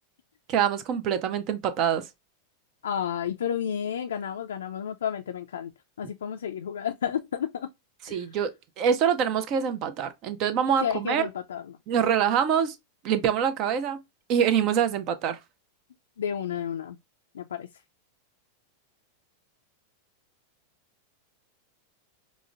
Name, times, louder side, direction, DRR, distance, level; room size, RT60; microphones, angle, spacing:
voice 1, 0.5-2.1 8.1-11.2 11.9-12.8 13.0-14.0 14.3-15.4, right 8 dB, 45° right, 0.6 m, -25 dB
voice 2, 2.8-5.7 6.0-7.7 8.1-8.3 10.8-11.8 16.2-17.0 17.3-17.7, left 8 dB, 75° left, 0.3 m, -31 dB
4.9 x 2.1 x 2.4 m
hypercardioid pair, 95°, 0 cm